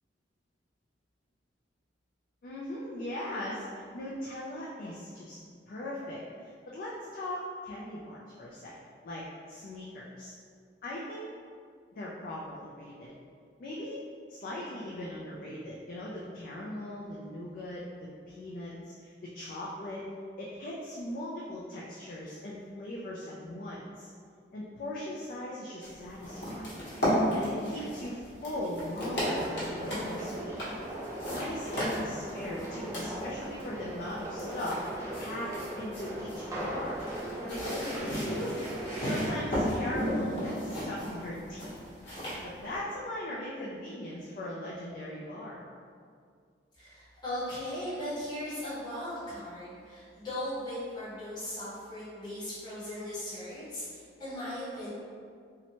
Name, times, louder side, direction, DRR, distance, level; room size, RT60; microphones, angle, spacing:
voice 1, 2.4-5.4 5.7-8.7 9.0-10.3 10.8-11.3 11.9-13.1 13.6-14.0 14.3-17.8 18.3-20.1 20.4-24.1 24.5-26.7 27.3-30.6 31.3-34.8 35.2-37.0 37.4-38.6 39.0-41.8 42.4-45.7, left 1 dB, 50° left, -5 dB, 0.3 m, -39 dB
sound 1, 25.8-42.8, equal, 65° left, 1.0 m, -35 dB
sound 2, 29.2-39.2, right 1 dB, 15° right, 0.4 m, -39 dB
voice 2, 46.8-54.9, left 1 dB, 25° left, -12 dB, 0.8 m, -38 dB
2.8 x 2.1 x 2.8 m, 2.1 s
head